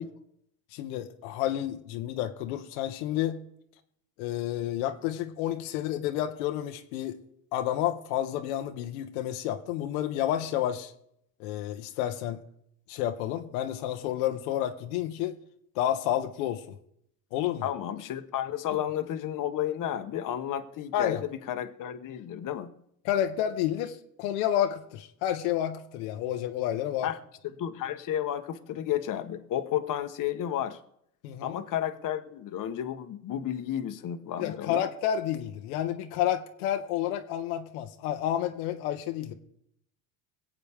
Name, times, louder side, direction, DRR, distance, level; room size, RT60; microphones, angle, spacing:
voice 1, 0.7-3.4 4.2-7.2 7.5-10.9 11.4-12.4 12.9-15.3 15.7-16.6 17.3-17.7 18.7-18.8 20.9-21.2 23.0-27.1 31.2-31.6 34.4-39.3, left 11 dB, 85° left, 5 dB, 1.3 m, -30 dB
voice 2, 17.6-22.7 27.0-27.2 27.6-30.8 31.4-34.8, left 10 dB, 45° left, 7 dB, 1.3 m, -32 dB
23.0 x 8.3 x 3.6 m, 0.72 s
supercardioid pair, 100°, 42 cm